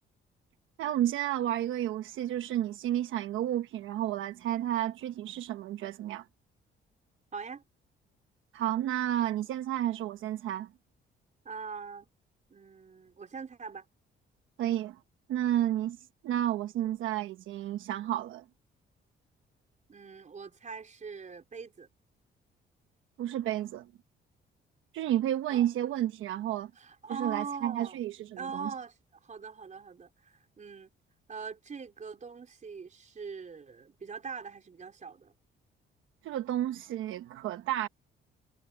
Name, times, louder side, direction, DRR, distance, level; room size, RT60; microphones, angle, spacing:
voice 1, 0.8-6.2 8.5-10.7 14.6-15.0 15.3-16.0 16.2-18.4 23.2-23.9 24.9-26.7 27.1-28.7 36.2-37.9, right 12 dB, 85° right, 1.1 m, -31 dB
voice 2, 7.3-7.6 11.4-12.1 12.5-13.9 19.9-21.9 25.5-25.7 26.8-28.0 28.4-29.0 29.2-30.9 31.3-35.3, right 5 dB, 40° right, 4.3 m, -42 dB
cardioid pair, 90°, 20 cm